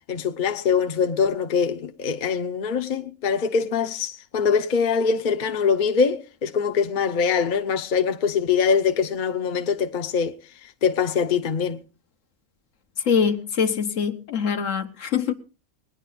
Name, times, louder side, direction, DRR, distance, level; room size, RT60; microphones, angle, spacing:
voice 1, 0.1-10.3 10.8-11.8, left 6 dB, 45° left, 0.9 m, -23 dB
voice 2, 13.0-15.3, left 6 dB, 80° left, 1.5 m, -23 dB
20.0 x 10.0 x 3.9 m
omnidirectional pair, 1.3 m